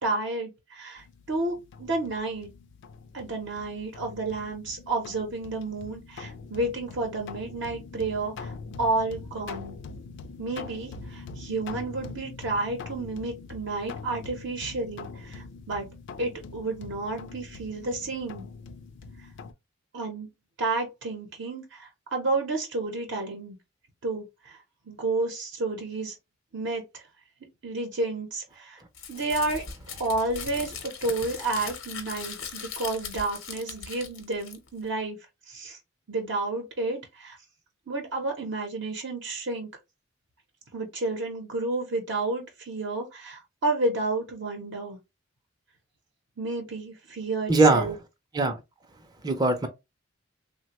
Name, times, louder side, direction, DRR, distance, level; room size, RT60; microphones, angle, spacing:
voice 1, 0.0-2.5 3.1-9.8 10.4-15.9 16.2-18.5 19.9-20.3 20.6-23.6 24.0-24.6 24.9-26.2 26.5-27.0 27.6-28.8 29.1-29.7 30.0-35.2 35.5-35.8 36.1-37.4 37.9-39.7 40.7-45.0 46.4-48.0, right 2 dB, 65° right, 0.8 m, -31 dB
sound 1, 1.0-19.5, left 4 dB, 60° left, 0.4 m, -43 dB
Crumpling crinkling, 28.9-34.9, left 6 dB, 90° left, 0.8 m, -39 dB
voice 2, 47.5-47.9 48.3-48.6 49.2-49.7, right 3 dB, 20° right, 0.4 m, -21 dB
3.3 x 2.2 x 2.9 m
head